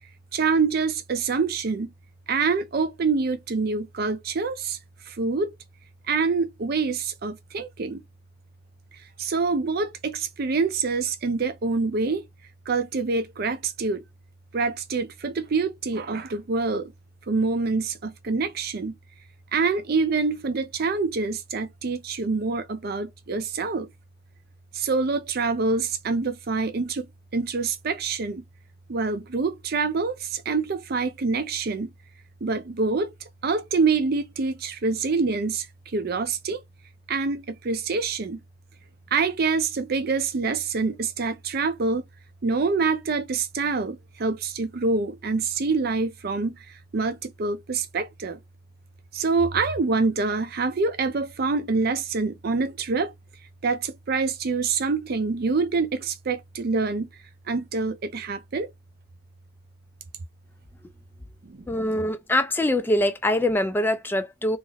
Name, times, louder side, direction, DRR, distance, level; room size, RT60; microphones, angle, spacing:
voice 1, 0.3-1.9 2.3-4.8 5.1-5.5 6.1-8.0 9.2-12.3 12.7-14.0 14.5-16.9 17.3-18.9 19.5-23.9 24.7-28.4 28.9-31.9 32.4-36.6 37.1-38.4 39.1-42.0 42.4-48.4 49.1-53.1 53.6-57.1 57.5-58.7 61.4-62.0, right 4 dB, 55° right, 0.5 m, -26 dB
voice 2, 61.7-64.6, left 1 dB, 10° left, 0.3 m, -23 dB
2.9 x 2.5 x 3.9 m
head